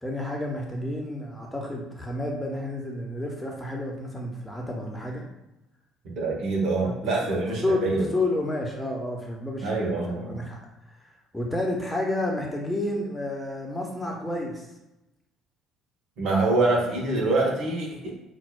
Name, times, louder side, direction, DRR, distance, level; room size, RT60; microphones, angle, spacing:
voice 1, 0.0-5.2 6.8-6.9 7.2-7.4 7.6-10.6 11.3-14.6, left 1 dB, 5° left, -1 dB, 0.9 m, -30 dB
voice 2, 6.0-8.1 9.6-10.4 16.2-18.1, right 2 dB, 60° right, -2 dB, 1.0 m, -25 dB
5.8 x 2.3 x 2.3 m, 0.92 s
figure-of-eight pair, 55°, 0 cm